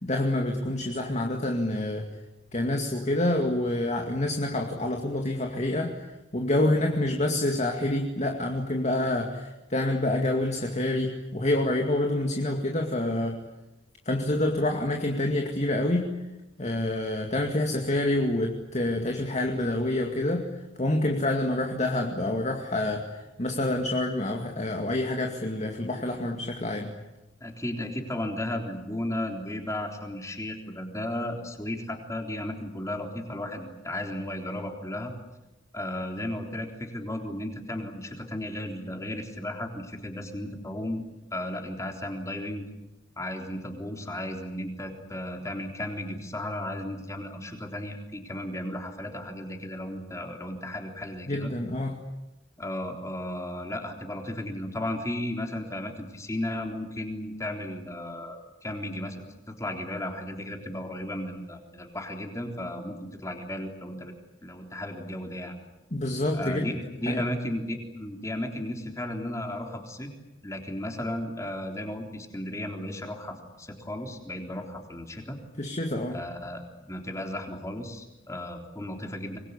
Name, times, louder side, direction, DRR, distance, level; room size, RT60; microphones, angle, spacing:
voice 1, 0.0-2.2 2.5-13.4 14.1-16.1 16.6-20.5 20.8-26.9 51.3-52.1 65.9-66.7 67.1-67.2 75.6-76.2, left 1 dB, 35° left, 2 dB, 2.3 m, -27 dB
voice 2, 27.4-35.1 35.7-41.0 41.3-42.7 43.2-51.5 52.6-64.1 64.4-65.5 66.3-70.1 70.4-75.4 76.1-79.4, left 1 dB, 15° left, 3 dB, 3.7 m, -34 dB
25.5 x 21.5 x 9.8 m, 1.0 s
head